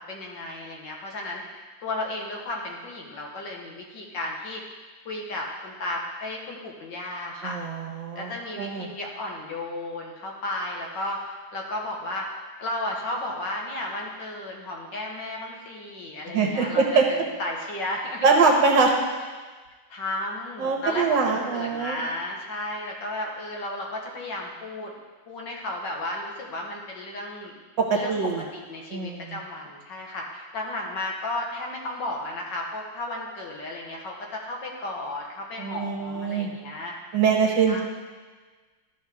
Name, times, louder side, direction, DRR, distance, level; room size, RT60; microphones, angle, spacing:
voice 1, 0.1-4.6 5.1-7.6 8.2-12.3 12.6-18.3 19.9-24.9 25.3-27.6 27.9-37.0 37.7-37.8, left 1 dB, 70° left, -1 dB, 1.8 m, -34 dB
voice 2, 7.4-8.3 8.6-8.9 16.3-17.1 18.2-18.9 20.6-22.0 27.8-28.4 28.9-29.3 35.6-36.5 37.1-37.8, right 5 dB, 70° right, 1 dB, 1.8 m, -23 dB
12.5 x 6.2 x 3.5 m, 1.4 s
omnidirectional pair, 2.1 m